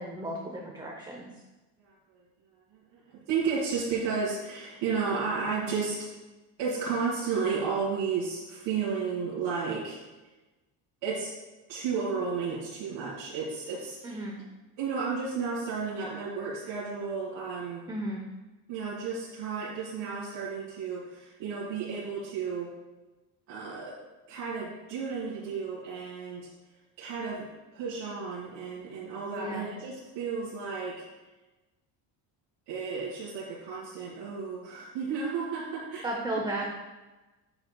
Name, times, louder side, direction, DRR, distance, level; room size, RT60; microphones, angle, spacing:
voice 1, 0.0-1.3 14.0-14.4 17.9-18.2 29.3-29.7 36.0-36.7, right 1 dB, 10° right, -1 dB, 0.6 m, -34 dB
voice 2, 1.8-2.2 2.7-6.1 6.6-10.0 11.0-11.4 11.7-14.2 14.8-17.9 18.7-22.7 23.5-24.0 24.3-26.5 27.0-27.5 27.7-31.0 32.7-36.0, right 5 dB, 90° right, -9 dB, 2.1 m, -33 dB
8.6 x 7.5 x 2.2 m, 1.1 s
cardioid pair, 145°, 42 cm